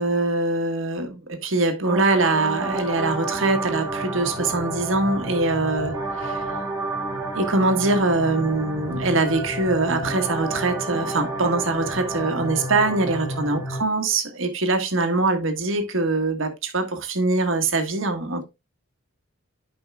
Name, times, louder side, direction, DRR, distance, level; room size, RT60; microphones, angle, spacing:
voice 1, 0.0-6.4 7.3-18.4, right 2 dB, 65° right, 1.5 m, -23 dB
sound 1, 1.8-13.8, right 2 dB, 15° right, 2.1 m, -30 dB
11.5 x 5.5 x 2.3 m
head